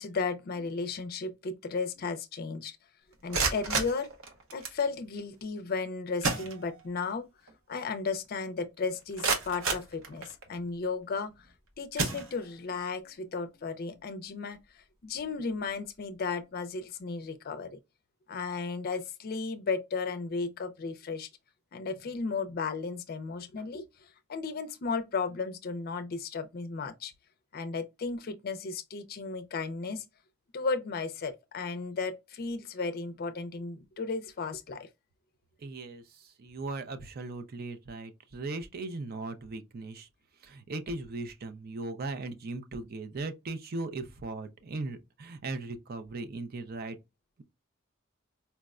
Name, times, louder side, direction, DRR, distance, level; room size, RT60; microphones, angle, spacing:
voice 1, 0.0-2.8 3.2-4.1 4.5-7.3 7.7-11.3 11.8-17.7 18.3-21.3 21.7-23.9 24.3-27.1 27.5-30.0 30.5-34.9, left 4 dB, 45° left, 0.4 m, -34 dB
sound 1, 3.1-4.8 5.8-5.9 6.2-7.1 7.5-7.6 8.1-8.2 8.8-10.6 11.3-11.5 11.9-12.8, right 4 dB, 85° right, 0.8 m, -32 dB
voice 2, 35.6-40.1 40.4-47.0, right 3 dB, 45° right, 0.5 m, -38 dB
4.4 x 2.1 x 2.4 m
head